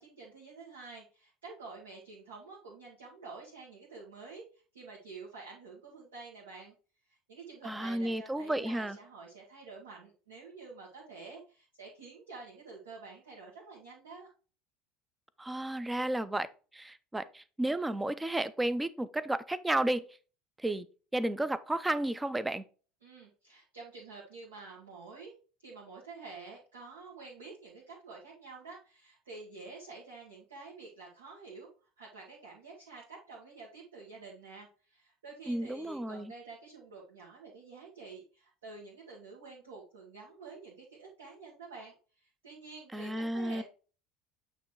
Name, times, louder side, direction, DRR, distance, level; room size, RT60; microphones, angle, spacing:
voice 1, 0.0-6.7 7.1-14.3 23.0-25.3 25.6-31.7 32.0-43.6, right 4 dB, 70° right, 1.8 m, -49 dB
voice 2, 7.6-9.0 15.4-16.5 16.7-20.0 20.6-20.9 21.1-22.6 35.5-36.3 42.9-43.6, right 1 dB, 10° right, 0.6 m, -32 dB
8.9 x 3.1 x 4.6 m
figure-of-eight pair, 70°, 0 cm